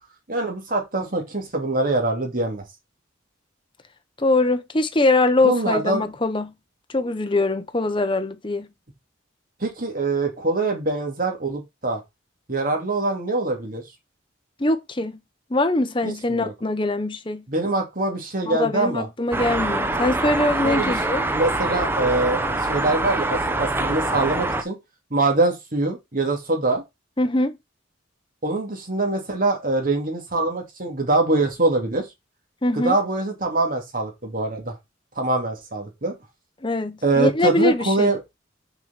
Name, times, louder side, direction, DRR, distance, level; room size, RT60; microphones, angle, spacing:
voice 1, 0.3-2.6 5.4-6.0 9.6-12.0 12.5-13.8 16.0-16.5 17.5-19.1 20.6-21.0 21.3-24.8 25.1-26.8 28.4-32.1 32.7-34.7 35.2-36.1 37.0-38.2, right 2 dB, 45° right, 2.4 m, -24 dB
voice 2, 4.2-6.5 6.9-8.7 14.6-15.2 15.5-17.4 18.4-21.2 27.2-27.6 32.6-33.0 36.6-38.1, left 2 dB, 25° left, 0.9 m, -22 dB
sound 1, 19.3-24.6, right 2 dB, 10° right, 0.8 m, -24 dB
6.5 x 4.9 x 5.7 m
head